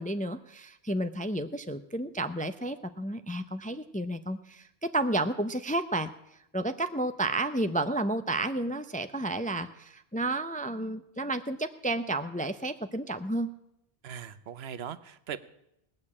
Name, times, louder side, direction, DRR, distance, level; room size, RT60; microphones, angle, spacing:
voice 1, 0.0-6.1 6.5-13.5, right 2 dB, 10° left, 10 dB, 0.4 m, -31 dB
voice 2, 14.0-15.5, right 8 dB, 80° right, 14 dB, 1.0 m, -40 dB
19.0 x 6.6 x 8.5 m, 0.80 s
omnidirectional pair, 1.0 m